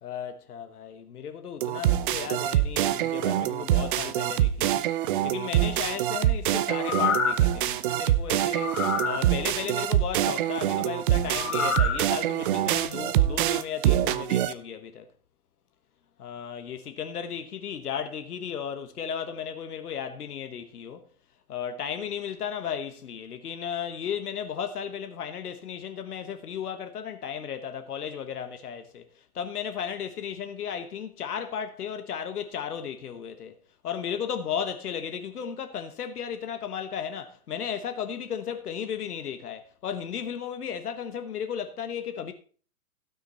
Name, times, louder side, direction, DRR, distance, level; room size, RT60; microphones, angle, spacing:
voice 1, 0.0-4.9 5.2-15.0 16.2-21.1 21.5-29.0 29.3-33.5 33.8-42.3, left 8 dB, 80° left, 1.2 m, -35 dB
sound 1, 1.6-14.5, right 12 dB, 35° right, 0.6 m, -25 dB
sound 2, 6.7-7.5 8.5-9.2 11.3-12.0 12.5-12.6, left 7 dB, 60° left, 3.1 m, -28 dB
16.0 x 6.2 x 4.1 m
hypercardioid pair, 130°, 44 cm